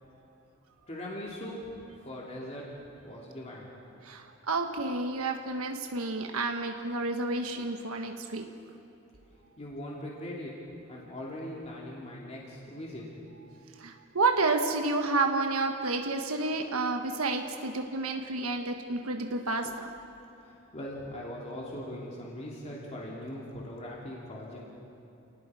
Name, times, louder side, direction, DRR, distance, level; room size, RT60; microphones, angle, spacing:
voice 1, 0.9-1.7 2.0-2.7 3.0-3.7 9.6-10.5 10.9-13.1 20.4-24.6, left 1 dB, 30° left, -3 dB, 2.6 m, -40 dB
voice 2, 4.0-8.5 13.8-19.9, right 3 dB, 85° right, 4 dB, 1.3 m, -30 dB
29.0 x 19.0 x 4.9 m, 2.9 s
head